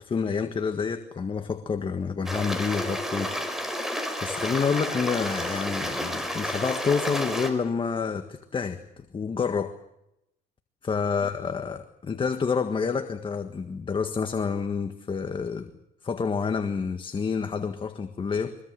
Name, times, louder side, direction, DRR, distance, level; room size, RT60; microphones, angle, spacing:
voice 1, 0.0-3.3 4.2-8.8 9.1-9.8 10.8-15.7 16.0-18.6, left 5 dB, 30° left, 1.6 m, -28 dB
Stream, 2.3-7.5, equal, ahead, 5.1 m, -31 dB
24.0 x 22.5 x 7.7 m
cardioid pair, 110°, 17 cm